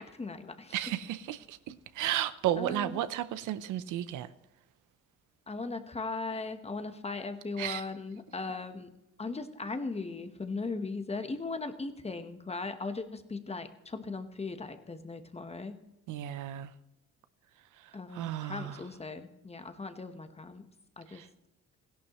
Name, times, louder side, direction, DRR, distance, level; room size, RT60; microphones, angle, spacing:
voice 1, 0.0-0.8 2.6-3.0 5.5-8.9 9.2-15.8 17.9-20.7 21.0-21.2, left 3 dB, 20° left, 1.1 m, -38 dB
voice 2, 0.7-4.3 7.6-7.8 16.1-16.7 17.8-18.8 21.1-21.3, right 12 dB, 85° right, 0.7 m, -34 dB
16.0 x 11.5 x 3.0 m
cardioid pair, 90°, 30 cm